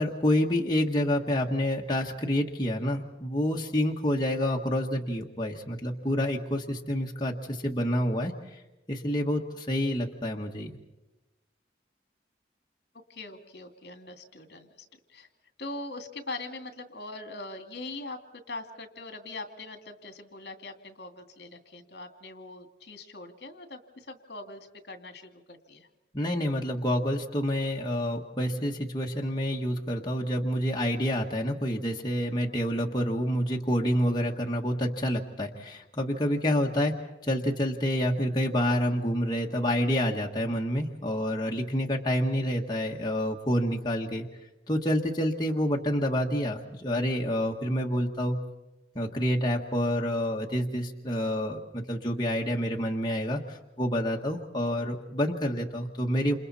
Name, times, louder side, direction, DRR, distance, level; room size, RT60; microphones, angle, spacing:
voice 1, 0.0-8.6 8.9-10.7 26.1-36.9 37.2-44.3 44.7-48.4 48.9-56.4, equal, 25° left, -1 dB, 1.5 m, -28 dB
voice 2, 13.1-15.3 15.6-25.9 34.3-34.5, left 2 dB, 65° left, 6 dB, 2.4 m, -42 dB
28.5 x 28.0 x 4.3 m, 1.0 s
head